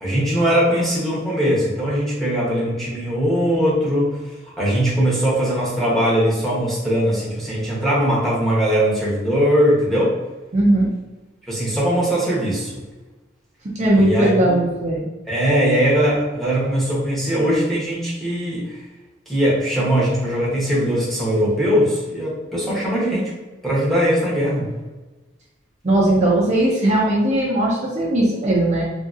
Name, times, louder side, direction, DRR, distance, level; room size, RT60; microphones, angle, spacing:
voice 1, 0.0-4.2 4.6-10.1 11.5-12.8 13.9-14.6 15.3-18.8 19.3-23.3 23.6-24.7, equal, ahead, -8 dB, 0.9 m, -20 dB
voice 2, 10.5-10.9 13.8-15.1 25.8-28.8, right 1 dB, 35° right, -5 dB, 0.5 m, -18 dB
2.7 x 2.6 x 2.4 m, 1.2 s
head